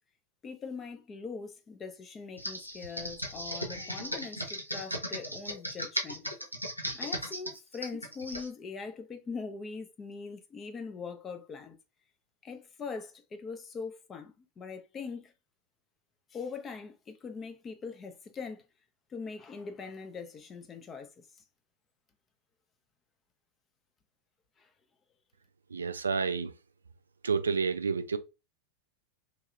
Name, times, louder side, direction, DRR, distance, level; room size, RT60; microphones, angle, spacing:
voice 1, 0.4-6.3 6.9-11.8 12.4-15.3 16.3-18.6 19.1-21.1 24.6-24.7, left 5 dB, 20° left, 0.6 m, -42 dB
Computer keyboard, 2.4-8.5, equal, 90° left, 0.7 m, -37 dB
voice 2, 25.7-26.5 27.2-28.2, right 5 dB, 75° right, 0.3 m, -29 dB
3.1 x 2.7 x 2.4 m
figure-of-eight pair, 90°, 0 cm